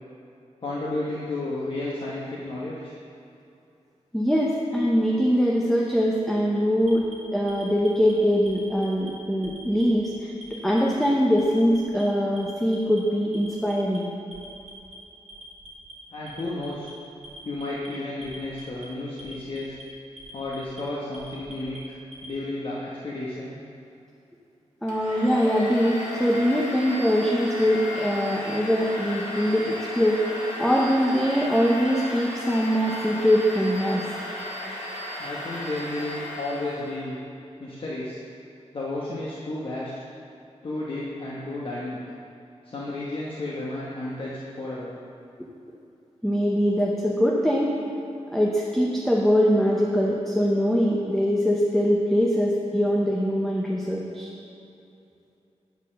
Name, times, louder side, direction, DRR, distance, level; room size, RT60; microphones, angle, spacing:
voice 1, 0.6-2.9 16.1-16.9 17.4-19.7 20.3-22.0 22.2-23.6 35.2-37.2 37.6-38.2 38.7-39.9 40.6-42.0 42.6-45.0, left 2 dB, 45° left, -6 dB, 1.0 m, -32 dB
voice 2, 4.1-7.0 7.3-14.1 24.8-30.2 30.6-34.0 46.2-47.7 48.3-54.3, equal, ahead, -3 dB, 0.7 m, -22 dB
Alarm, 6.8-8.1 8.5-9.1 9.4-10.1 10.4-11.0 11.4-12.0 12.4-13.0 13.3-14.0 14.3-14.9 15.3-15.9 16.3-16.9 17.2-17.9 18.2-18.9 19.2-19.8 20.2-20.8 21.1-22.3, right 1 dB, 50° right, 1.8 m, -45 dB
Domestic sounds home sounds, 24.9-37.0, left 1 dB, 85° left, 1.9 m, -35 dB
9.3 x 4.6 x 6.2 m, 2.7 s
wide cardioid pair, 165°, 12 cm